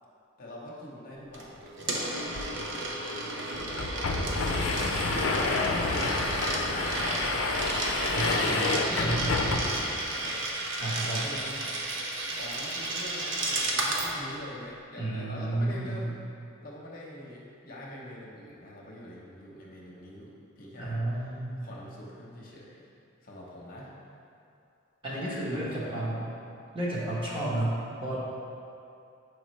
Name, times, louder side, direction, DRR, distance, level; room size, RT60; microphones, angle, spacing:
voice 1, 0.4-3.1 3.3-5.5 5.7-6.1 6.4-7.7 8.4-10.4 11.0-11.8 12.3-16.2 16.6-21.4 21.6-22.8 23.2-23.9 25.0-26.0, left 1 dB, 45° left, -4 dB, 0.9 m, -44 dB
Coin (dropping), 1.3-14.1, right 2 dB, 60° right, 0.7 m, -32 dB
sound 1, 2.3-2.4 2.7-2.8 3.5-10.0, left 3 dB, 80° left, 0.5 m, -29 dB
voice 2, 8.1-8.6 9.0-9.3 10.8-11.3 15.0-16.0 20.8-21.7 25.0-26.3 26.7-28.2, right 1 dB, 25° right, -7 dB, 1.1 m, -32 dB
7.2 x 4.8 x 3.1 m, 2.6 s
head